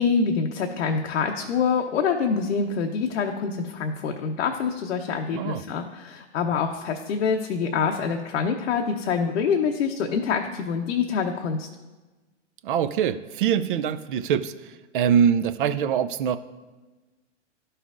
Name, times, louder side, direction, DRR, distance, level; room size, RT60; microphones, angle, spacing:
voice 1, 0.0-11.7, left 6 dB, 70° left, 3 dB, 0.8 m, -25 dB
voice 2, 12.6-16.4, right 8 dB, 45° right, 12 dB, 0.4 m, -24 dB
12.5 x 5.6 x 2.5 m, 1.2 s
hypercardioid pair, 135°, 36 cm